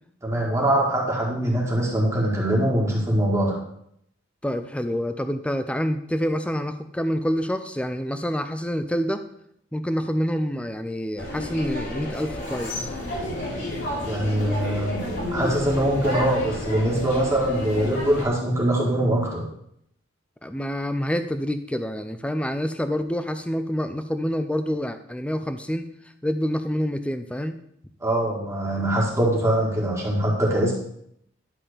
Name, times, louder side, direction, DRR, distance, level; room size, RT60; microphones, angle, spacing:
voice 1, 0.2-3.6 14.0-15.0 15.3-19.4 28.0-30.7, right 1 dB, 15° right, -4 dB, 1.8 m, -23 dB
voice 2, 4.4-9.2 9.7-13.0 20.4-25.9 26.2-27.6, equal, 5° left, 8 dB, 0.5 m, -27 dB
sound 1, 11.2-18.2, left 1 dB, 55° left, 3.2 m, -31 dB
11.0 x 3.8 x 6.7 m, 0.71 s
head